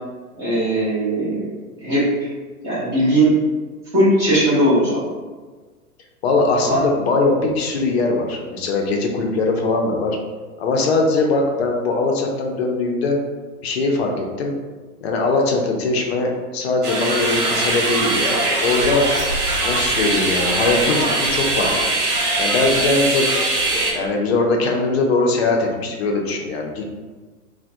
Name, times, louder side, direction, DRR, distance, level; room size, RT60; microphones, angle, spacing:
voice 1, 0.4-1.5 1.8-2.3 2.6-3.3 3.9-5.0 6.6-6.8, right 1 dB, 10° right, -11 dB, 0.4 m, -18 dB
voice 2, 6.2-10.2 10.6-13.2 13.6-14.5 15.0-19.0 19.6-21.9 22.4-23.2 23.9-26.9, left 3 dB, 45° left, 1 dB, 0.5 m, -21 dB
sound 1, 16.8-23.9, right 2 dB, 75° right, 0.7 m, -21 dB
2.2 x 2.1 x 2.6 m, 1.4 s
figure-of-eight pair, 110°, 46 cm